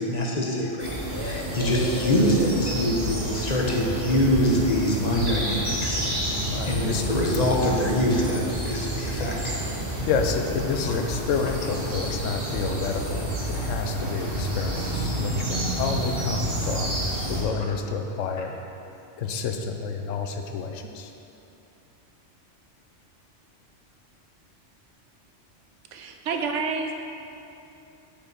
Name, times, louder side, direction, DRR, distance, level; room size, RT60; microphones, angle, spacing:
voice 1, 0.0-6.1 6.6-9.6 10.0-10.1, equal, 35° left, -1 dB, 1.0 m, -24 dB
sound 1, 0.8-17.4, right 1 dB, 50° right, 1.9 m, -29 dB
voice 2, 6.5-7.0 10.1-17.0 17.3-18.5 19.2-21.1, left 5 dB, 90° left, 5 dB, 1.0 m, -29 dB
voice 3, 25.9-26.9, right 4 dB, 75° right, 4 dB, 1.0 m, -28 dB
6.9 x 5.7 x 6.0 m, 2.8 s
omnidirectional pair, 1.3 m